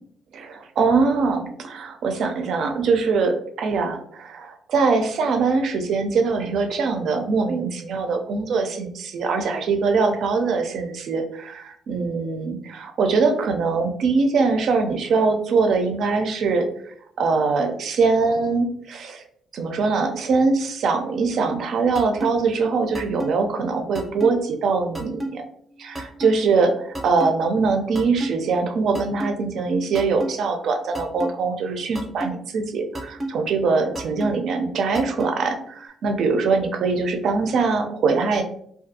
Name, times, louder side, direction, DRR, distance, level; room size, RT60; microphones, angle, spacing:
voice 1, 0.3-16.7 17.2-19.2 19.5-25.4 25.8-38.4, right 4 dB, 70° right, 4 dB, 0.4 m, -22 dB
sound 1, 22.0-22.3 22.9-23.3 24.0-24.3 25.0-25.3 26.0-26.3 27.0-27.3 28.0-28.3 29.0-29.3 30.0-30.3 31.0-31.3 32.0-32.3 33.0-33.3 34.0-34.3 35.0-35.3, right 1 dB, 5° right, 0.6 m, -28 dB
2.4 x 2.3 x 2.6 m, 0.66 s
cardioid pair, 90°, 0 cm